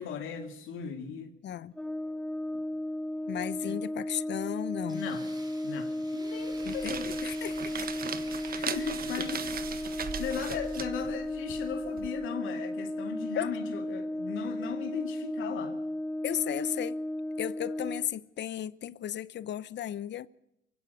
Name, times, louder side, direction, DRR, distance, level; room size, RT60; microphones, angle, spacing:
voice 1, 0.0-1.3 2.5-2.6 3.6-3.8 4.9-5.2 5.6-7.1 8.5-9.6 10.0-15.8, left 7 dB, 85° left, 2.4 m, -38 dB
Brass instrument, 1.7-18.1, left 1 dB, 5° left, 0.9 m, -35 dB
voice 2, 3.3-5.0 6.6-7.9 9.2-9.5 13.4-13.5 16.2-17.0 17.4-20.3, left 11 dB, 65° left, 0.8 m, -35 dB
Tools, 4.9-10.8, right 2 dB, 20° right, 4.2 m, -50 dB
sound 1, 6.4-12.1, right 7 dB, 50° right, 1.4 m, -39 dB
23.5 x 16.5 x 8.2 m
cardioid pair, 90°, 20 cm